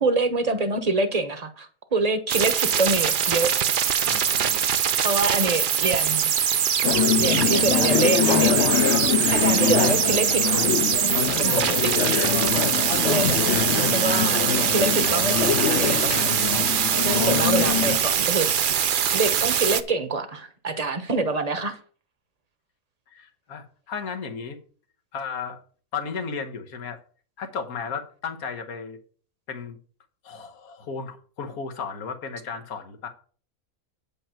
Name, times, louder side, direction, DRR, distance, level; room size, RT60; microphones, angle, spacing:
voice 1, 0.0-3.5 5.0-6.3 7.2-9.0 9.3-10.6 11.0-12.3 13.0-16.3 17.0-18.5 19.1-21.8, right 3 dB, 30° right, 9 dB, 1.0 m, -26 dB
sound 1, 2.3-19.8, right 8 dB, 55° right, 0.6 m, -23 dB
voice 2, 4.1-4.7 23.1-24.6 25.1-25.6 25.9-27.0 27.4-29.0 29.5-29.8 30.2-33.1, left 5 dB, 85° left, 5 dB, 1.7 m, -34 dB
sound 2, 6.8-18.0, left 9 dB, 60° left, 0.9 m, -24 dB
8.9 x 5.5 x 5.7 m, 0.42 s
omnidirectional pair, 1.5 m